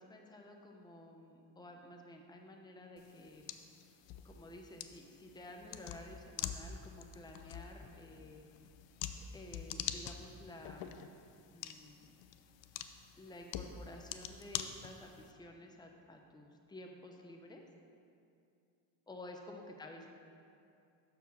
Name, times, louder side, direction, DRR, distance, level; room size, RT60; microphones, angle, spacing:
voice 1, 0.0-3.4 4.2-8.4 9.3-11.0 11.5-12.1 13.2-17.6 19.1-20.1, left 1 dB, 10° left, 2 dB, 0.8 m, -52 dB
sound 1, 3.0-15.3, left 9 dB, 70° left, 0.6 m, -46 dB
6.5 x 4.9 x 6.3 m, 2.5 s
supercardioid pair, 70°, 47 cm